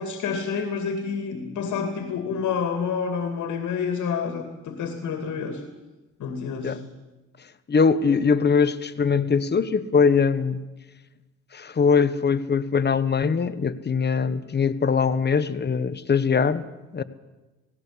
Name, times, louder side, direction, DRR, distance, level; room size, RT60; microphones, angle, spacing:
voice 1, 0.0-5.6 6.2-6.8, left 6 dB, 75° left, 6 dB, 2.4 m, -28 dB
voice 2, 7.7-10.6 11.5-16.6 16.9-17.0, left 5 dB, 35° left, 13 dB, 1.1 m, -22 dB
18.0 x 17.0 x 8.6 m, 1.1 s
cardioid pair, 90°, 30 cm